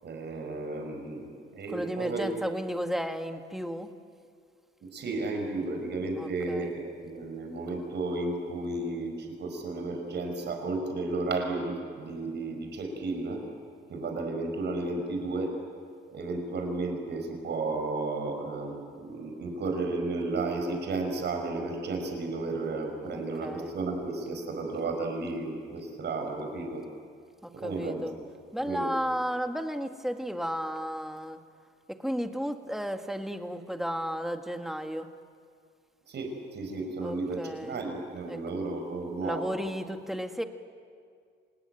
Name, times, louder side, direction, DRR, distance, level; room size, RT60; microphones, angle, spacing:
voice 1, 0.0-2.3 4.8-13.4 13.9-15.6 16.1-26.8 27.5-28.0 28.6-28.9 36.1-39.5, right 3 dB, 60° right, 3 dB, 5.7 m, -33 dB
voice 2, 1.7-3.9 6.1-6.8 23.1-23.8 27.4-28.2 28.5-31.4 31.9-35.1 37.0-37.8 38.3-38.4 39.2-40.4, equal, ahead, 6 dB, 1.9 m, -33 dB
27.5 x 20.0 x 9.3 m, 2.1 s
cardioid pair, 90°, 20 cm